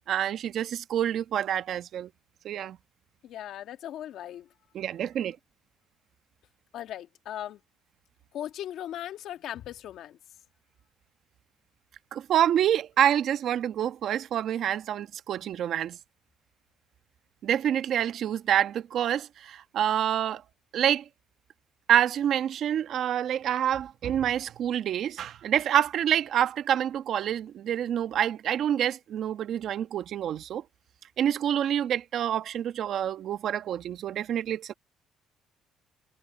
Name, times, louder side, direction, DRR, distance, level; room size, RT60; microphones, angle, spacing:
voice 1, 0.1-2.1 2.4-2.8 4.7-5.3 12.1-16.0 17.4-20.4 20.7-21.0 21.9-30.6 31.2-34.7, right 10 dB, 65° right, 1.2 m, -27 dB
voice 2, 3.2-4.5 6.7-7.6 8.3-10.2, left 11 dB, 70° left, 1.7 m, -38 dB
cardioid pair, 100°, 0 cm